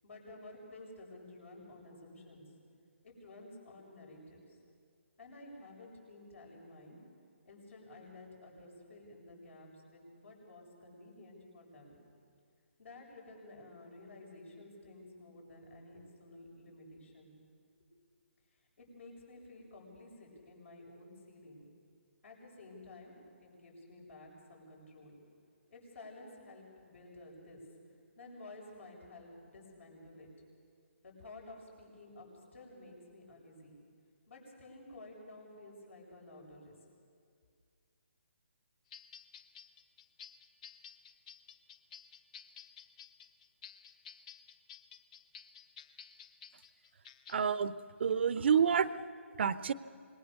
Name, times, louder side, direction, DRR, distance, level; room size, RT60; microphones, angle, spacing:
voice 1, 0.0-2.4 3.0-4.6 5.2-7.0 7.4-12.0 12.8-17.3 18.5-21.7 22.2-23.1 23.4-25.2 25.7-27.6 28.2-30.3 31.0-33.8 34.3-36.7, left 2 dB, 70° left, 0 dB, 7.8 m, -53 dB
sound 1, 38.9-47.5, left 8 dB, 35° left, 1.0 m, -53 dB
voice 2, 47.3-47.7 48.0-48.9 49.4-49.7, right 7 dB, 55° right, 16 dB, 0.7 m, -28 dB
26.0 x 20.5 x 6.9 m, 2.2 s
hypercardioid pair, 155°, 7 cm